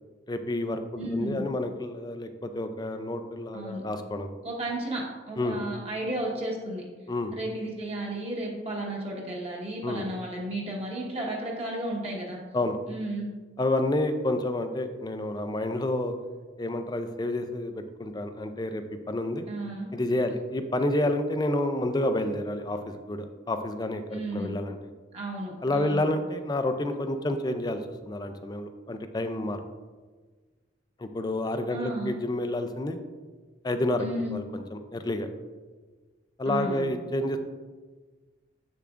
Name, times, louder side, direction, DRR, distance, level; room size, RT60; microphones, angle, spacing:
voice 1, 0.3-4.3 5.4-5.6 7.1-7.3 9.8-10.0 12.5-12.8 13.6-16.1 16.6-19.5 19.9-24.8 25.6-29.6 31.0-33.0 33.6-34.0 34.3-35.3 36.4-37.4, left 1 dB, 20° left, 8 dB, 0.4 m, -29 dB
voice 2, 1.0-1.4 3.5-3.8 4.4-6.8 7.3-12.4 12.9-13.3 19.5-19.9 24.1-24.6 25.1-26.0 31.7-32.1 34.0-34.4 36.4-36.9, right 1 dB, 35° right, -3 dB, 1.2 m, -33 dB
7.2 x 6.7 x 2.5 m, 1.4 s
head